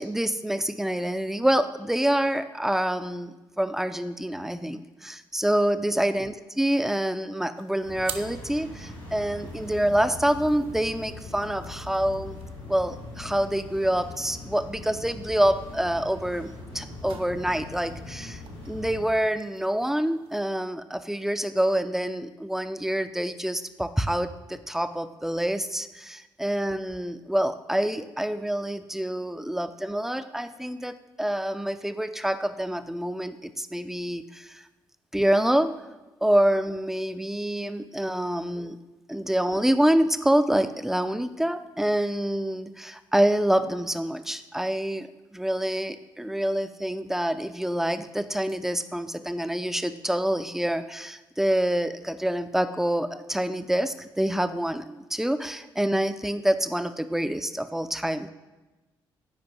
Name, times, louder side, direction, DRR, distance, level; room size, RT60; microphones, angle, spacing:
voice 1, 0.0-12.4 12.7-34.6 35.1-35.7 36.2-38.8 39.1-58.3, right 1 dB, 5° right, 11 dB, 0.4 m, -26 dB
sound 1, 7.5-20.3, right 7 dB, 55° right, 0.5 m, -48 dB
sound 2, 7.8-19.0, left 2 dB, 75° left, 1.9 m, -41 dB
8.7 x 5.0 x 3.0 m, 1.1 s
figure-of-eight pair, 40°, 12 cm